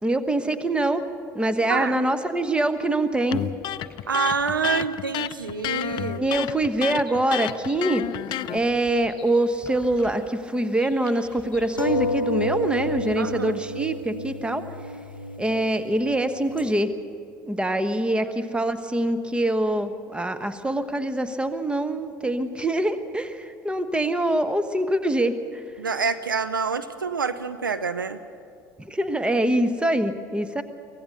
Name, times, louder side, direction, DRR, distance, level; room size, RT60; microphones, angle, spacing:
voice 1, 0.0-1.0 1.3-3.4 6.2-8.0 8.5-14.6 15.4-16.9 17.5-25.6 28.8-30.6, right 1 dB, 10° right, 10 dB, 1.2 m, -24 dB
sound 1, 3.2-13.5, left 2 dB, 5° left, 6.7 m, -50 dB
Electric guitar, 3.3-8.6, left 12 dB, 45° left, 0.5 m, -30 dB
voice 2, 4.1-6.2 13.2-13.6 25.8-28.2, right 5 dB, 80° right, 11 dB, 0.6 m, -27 dB
sound 2, 11.8-16.8, left 1 dB, 85° left, 0.8 m, -30 dB
24.0 x 17.0 x 6.7 m, 2.3 s
figure-of-eight pair, 65°, 11 cm